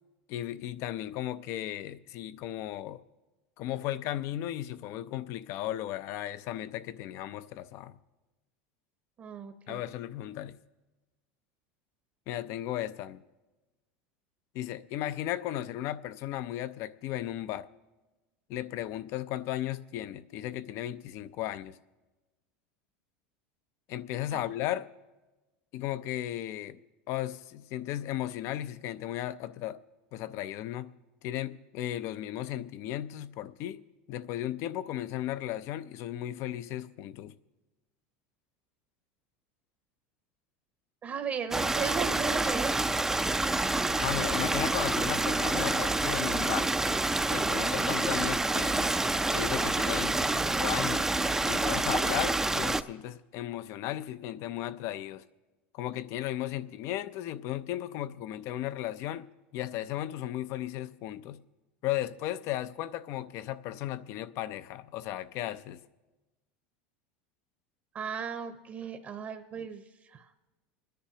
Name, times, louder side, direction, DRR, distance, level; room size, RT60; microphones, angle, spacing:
voice 1, 0.3-3.0 3.6-8.0 9.7-10.6 12.3-13.2 14.5-17.7 18.5-21.8 23.9-24.9 25.7-26.8 27.1-29.8 30.1-30.9 31.2-37.3 43.9-46.7 47.3-48.9 49.3-51.1 51.4-55.2 55.7-59.3 59.5-61.4 61.8-65.8, left 13 dB, 55° left, 0.5 m, -35 dB
voice 2, 9.2-9.8 24.3-24.5 41.0-43.1 47.4-47.7 67.9-70.3, right 7 dB, 35° right, 0.8 m, -37 dB
Stream, 41.5-52.8, right 2 dB, 10° right, 0.4 m, -28 dB
30.0 x 10.0 x 2.8 m
supercardioid pair, 110°, 6 cm